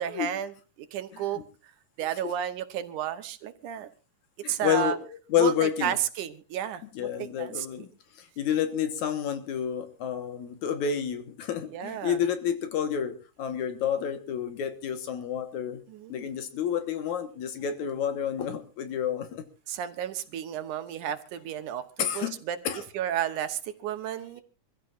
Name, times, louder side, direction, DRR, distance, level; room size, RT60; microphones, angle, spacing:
voice 1, 0.0-1.4 2.0-3.9 4.5-5.0 5.4-7.7 11.7-12.2 15.9-16.3 19.7-22.6 22.9-24.4, right 10 dB, 70° right, 10 dB, 2.4 m, -32 dB
voice 2, 4.4-5.9 7.0-7.9 8.1-15.8 16.1-19.4 22.0-22.4 22.7-22.8, left 9 dB, 65° left, 9 dB, 2.6 m, -29 dB
25.5 x 15.0 x 2.5 m, 0.32 s
omnidirectional pair, 3.8 m